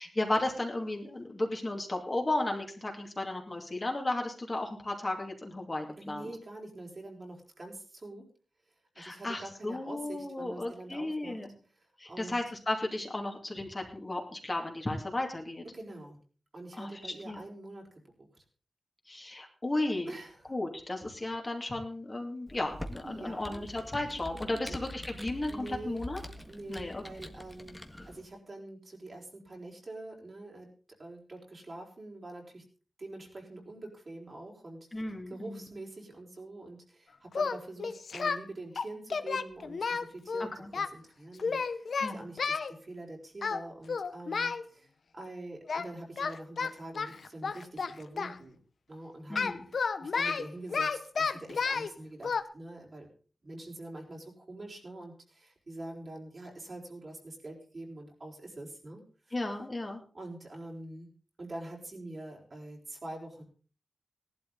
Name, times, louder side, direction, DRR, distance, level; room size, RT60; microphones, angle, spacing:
voice 1, 0.0-6.3 9.0-11.5 12.0-15.6 16.7-17.4 19.1-20.1 20.5-26.2 26.7-27.0 34.9-35.7 40.6-40.7 42.0-42.2 49.3-49.6 59.3-60.0, left 2 dB, 30° left, 1 dB, 2.6 m, -34 dB
voice 2, 6.0-8.3 9.0-11.4 12.0-12.4 15.7-16.2 16.5-18.3 20.0-20.5 23.0-23.6 24.5-24.8 25.5-26.0 26.5-27.8 28.1-30.7 31.0-32.6 33.0-48.6 48.9-49.4 49.7-53.1 53.4-59.3 60.1-61.1 61.4-63.4, right 2 dB, 45° right, 0 dB, 4.5 m, -45 dB
Computer keyboard, 22.5-28.3, left 1 dB, 10° left, 1.7 m, -45 dB
Singing, 37.3-38.4 38.8-40.9 41.4-42.7 43.4-43.6 43.9-44.6 45.7-45.9 46.2-48.4 49.3-51.9 52.2-52.4, left 5 dB, 75° left, 0.9 m, -32 dB
17.5 x 12.0 x 4.1 m, 0.39 s
wide cardioid pair, 105°, 0 cm